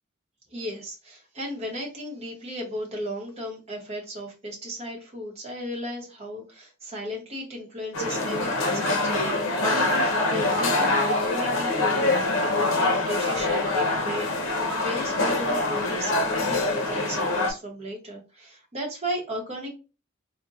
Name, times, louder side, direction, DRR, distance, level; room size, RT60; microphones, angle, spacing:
voice 1, 0.5-12.0 12.4-14.3 14.8-19.7, equal, 30° right, -2 dB, 0.8 m, -35 dB
sound 1, 7.9-17.5, left 2 dB, 85° left, 0.7 m, -24 dB
4.0 x 2.1 x 2.3 m, 0.31 s
head